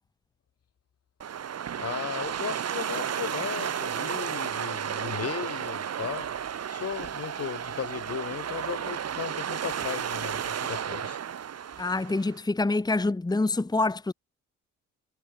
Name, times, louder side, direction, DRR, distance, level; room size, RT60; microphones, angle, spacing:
sound 1, 1.2-12.4, right 8 dB, 55° right, 4.6 m, -33 dB
voice 1, 1.8-6.3 6.7-11.2, left 8 dB, 55° left, 4.7 m, -36 dB
voice 2, 11.8-14.1, left 2 dB, 15° left, 1.4 m, -26 dB
cardioid pair, 90°, 30 cm